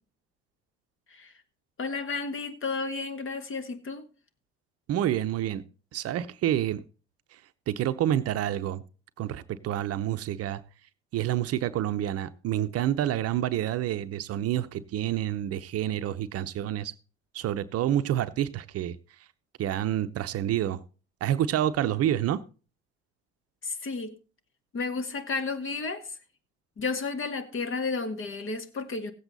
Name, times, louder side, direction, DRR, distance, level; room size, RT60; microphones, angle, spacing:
voice 1, 1.8-4.0 23.6-24.1 24.7-26.2 26.8-29.1, left 4 dB, 40° left, 1.6 m, -32 dB
voice 2, 4.9-5.6 5.9-6.8 7.7-8.8 9.2-10.6 11.1-16.9 17.3-19.0 19.6-20.8 21.2-22.4, right 11 dB, 50° right, 0.7 m, -28 dB
16.0 x 7.9 x 4.0 m
hypercardioid pair, 65°, 31 cm